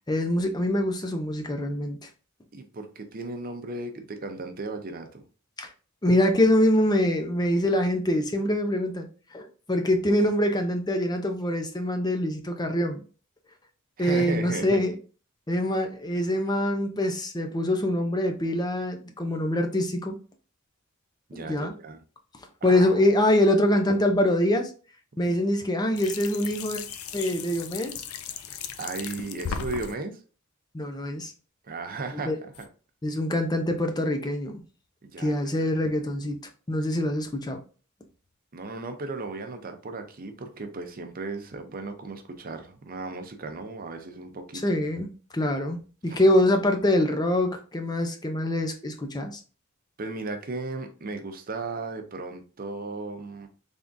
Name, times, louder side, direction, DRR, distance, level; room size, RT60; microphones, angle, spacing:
voice 1, 0.1-2.0 5.6-5.7 6.0-13.0 14.0-14.9 15.5-20.2 21.3-21.7 22.6-24.7 25.2-26.8 27.1-28.0 30.7-31.3 32.2-32.4 33.0-34.6 35.2-36.4 36.7-37.6 44.6-45.1 45.3-49.4, left 1 dB, 20° left, 0.6 m, -24 dB
voice 2, 2.5-5.2 14.0-14.8 21.3-22.0 22.6-23.0 25.3-25.4 28.8-30.2 31.6-32.7 35.0-35.7 38.5-44.6 46.1-46.2 50.0-53.5, right 3 dB, 40° right, 0.6 m, -36 dB
sound 1, 26.0-30.0 32.5-32.7, left 7 dB, 75° left, 0.4 m, -36 dB
3.6 x 3.5 x 2.6 m
head